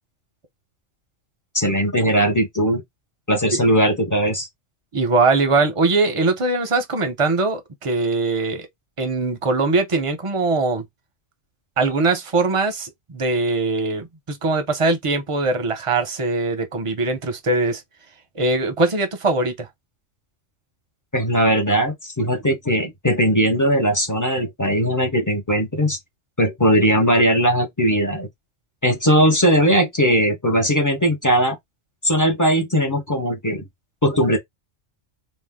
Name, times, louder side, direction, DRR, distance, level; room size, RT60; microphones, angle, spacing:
voice 1, 1.5-2.8 3.3-4.5 21.1-26.0 26.4-28.3 28.8-31.6 32.0-33.6 34.0-34.4, equal, 20° left, 0.6 m, -19 dB
voice 2, 4.9-8.7 9.0-10.8 11.8-17.8 18.4-19.7, right 3 dB, 35° right, 0.6 m, -21 dB
2.6 x 2.1 x 3.5 m
omnidirectional pair, 1.3 m